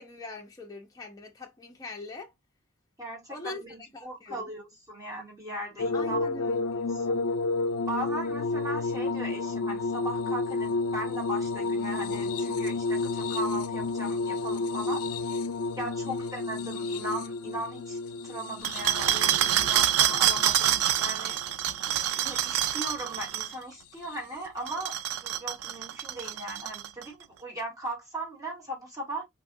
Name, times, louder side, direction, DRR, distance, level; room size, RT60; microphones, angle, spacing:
voice 1, 0.0-2.3 3.3-3.7 3.9-4.5 5.9-6.9 16.1-16.3, left 2 dB, 15° left, 0.6 m, -42 dB
voice 2, 3.0-6.2 6.9-7.2 7.8-15.0 15.8-18.0 18.2-21.4 22.1-29.2, right 1 dB, 15° right, 1.4 m, -38 dB
sound 1, 5.8-21.0 21.9-22.6 24.0-24.2, left 3 dB, 90° left, 0.4 m, -31 dB
sound 2, 18.6-23.5 24.6-27.0, right 11 dB, 85° right, 0.4 m, -26 dB
3.5 x 2.4 x 2.5 m
head